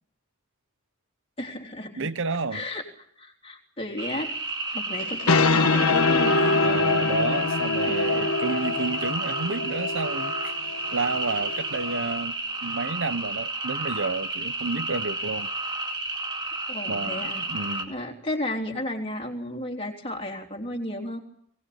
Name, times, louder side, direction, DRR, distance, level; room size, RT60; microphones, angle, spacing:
voice 1, 1.4-2.1 2.5-2.8 3.2-4.3 4.7-6.7 7.9-8.0 16.7-17.4 17.9-21.2, left 1 dB, 25° left, 3.5 m, -33 dB
voice 2, 2.0-2.7 6.6-10.5 10.9-15.5 16.9-17.9, right 4 dB, 60° right, 1.0 m, -30 dB
sound 1, 4.0-17.8, right 2 dB, 20° right, 2.3 m, -31 dB
sound 2, 5.0-12.2, left 3 dB, 85° left, 1.4 m, -25 dB
22.5 x 19.0 x 8.6 m
head